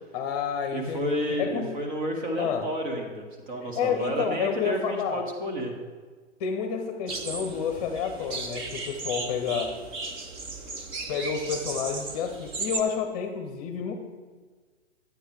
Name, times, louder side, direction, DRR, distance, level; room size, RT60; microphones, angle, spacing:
voice 1, 0.1-1.8 2.4-2.7 3.6-5.2 6.4-9.7 11.1-13.9, left 6 dB, 30° left, 5 dB, 0.8 m, -30 dB
voice 2, 0.7-5.7, equal, 40° right, 2 dB, 2.0 m, -31 dB
sound 1, 7.1-12.8, right 3 dB, 15° right, 0.6 m, -36 dB
11.5 x 8.9 x 3.3 m, 1.5 s
figure-of-eight pair, 120°, 37 cm